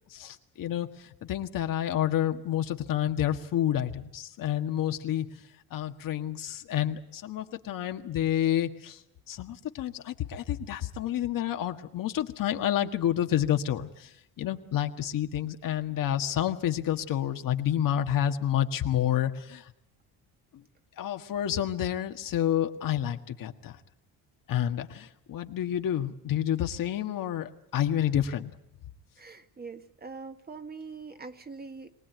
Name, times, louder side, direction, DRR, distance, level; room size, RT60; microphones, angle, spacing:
voice 1, 0.1-5.3 5.7-9.0 9.3-14.1 14.4-19.6 21.0-23.8 24.5-28.5, left 11 dB, 60° left, 6 dB, 1.7 m, -29 dB
voice 2, 29.2-31.9, right 4 dB, 25° right, 7 dB, 1.7 m, -43 dB
23.5 x 18.5 x 9.3 m, 0.80 s
cardioid pair, 110°, 37 cm